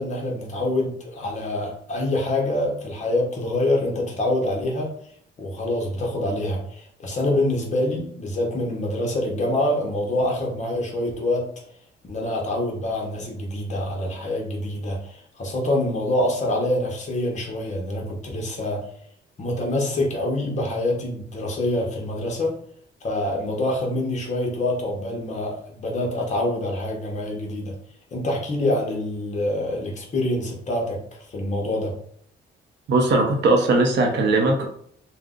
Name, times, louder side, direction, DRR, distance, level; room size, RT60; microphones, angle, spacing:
voice 1, 0.0-4.9 5.4-11.5 12.0-18.9 19.4-22.6 23.0-27.7 28.1-31.9, left 1 dB, 35° left, -1 dB, 0.7 m, -26 dB
voice 2, 32.9-34.7, right 2 dB, 60° right, 1 dB, 0.6 m, -19 dB
2.5 x 2.0 x 3.6 m, 0.64 s
cardioid pair, 160°, 20 cm